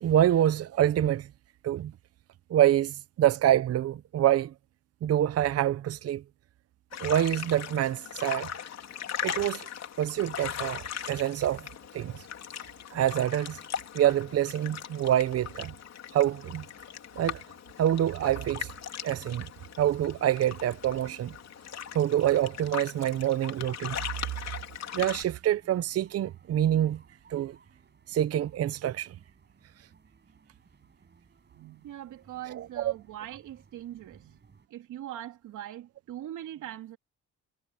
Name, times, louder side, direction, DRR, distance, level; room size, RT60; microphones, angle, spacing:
voice 1, 0.0-1.3 1.6-1.9 2.5-4.5 5.0-6.2 7.0-8.5 9.2-9.7 10.0-11.7 11.9-12.3 12.9-13.6 13.9-15.7 16.1-16.6 17.2-17.4 17.8-18.7 19.0-19.5 19.8-21.3 21.9-24.0 24.9-27.0 27.3-27.6 28.1-29.2 32.5-32.9, right 11 dB, 55° right, 0.7 m, -26 dB
sound 1, 6.9-25.2, left 9 dB, 60° left, 3.4 m, -39 dB
sound 2, 24.6-34.7, right 5 dB, 35° right, 7.2 m, -61 dB
voice 2, 31.5-37.0, right 12 dB, 80° right, 3.5 m, -42 dB
cardioid pair, 90°, 30 cm